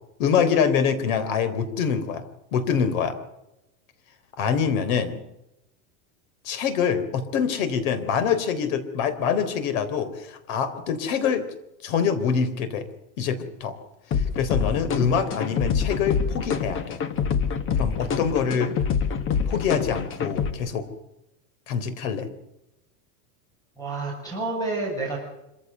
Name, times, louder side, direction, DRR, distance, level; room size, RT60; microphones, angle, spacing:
voice 1, 0.2-2.2 2.5-3.2 4.4-5.2 6.4-11.5 11.8-12.9 13.2-13.7 14.1-17.0 17.8-18.8 19.5-20.9 21.7-22.3, left 7 dB, 60° left, 12 dB, 3.9 m, -25 dB
sound 1, 14.1-20.5, left 6 dB, 25° left, 1.5 m, -26 dB
voice 2, 23.8-25.2, right 3 dB, 10° left, -1 dB, 6.3 m, -29 dB
26.0 x 15.5 x 8.1 m, 0.90 s
supercardioid pair, 160°, 45 cm